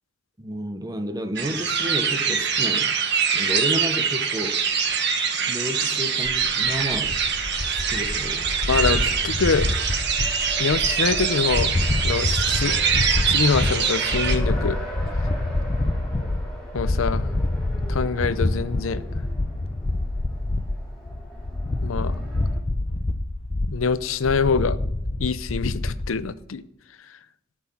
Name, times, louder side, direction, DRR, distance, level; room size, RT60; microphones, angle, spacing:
voice 1, 0.4-2.9 3.3-4.6 5.5-7.2 7.7-8.6 16.0-16.3, equal, 20° right, 0.8 m, -31 dB
sound 1, 1.4-14.4, right 6 dB, 60° right, 1.4 m, -24 dB
sound 2, 6.2-26.1, left 2 dB, 30° left, 0.6 m, -27 dB
Race car auto racing, 7.6-22.6, right 1 dB, 5° left, 2.9 m, -41 dB
voice 2, 8.7-9.7 10.6-11.7 12.0-12.8 13.3-14.8 16.7-17.3 17.9-19.0 21.8-22.2 23.7-24.8 25.2-26.6, left 5 dB, 85° left, 0.6 m, -24 dB
12.5 x 6.1 x 7.1 m
head